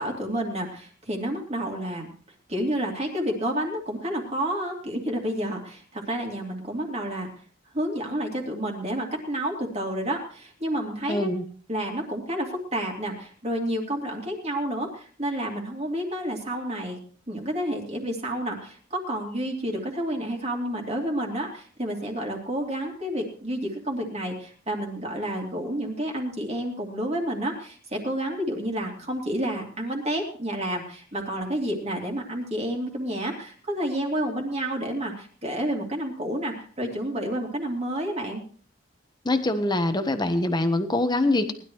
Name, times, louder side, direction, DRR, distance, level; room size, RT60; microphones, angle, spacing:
voice 1, 0.0-2.1 2.5-7.3 7.7-11.3 11.7-17.0 17.3-38.4, right 1 dB, 30° right, 1 dB, 2.7 m, -30 dB
voice 2, 11.1-11.4 39.2-41.5, left 2 dB, 20° left, 8 dB, 1.1 m, -24 dB
19.5 x 11.5 x 3.1 m, 0.42 s
head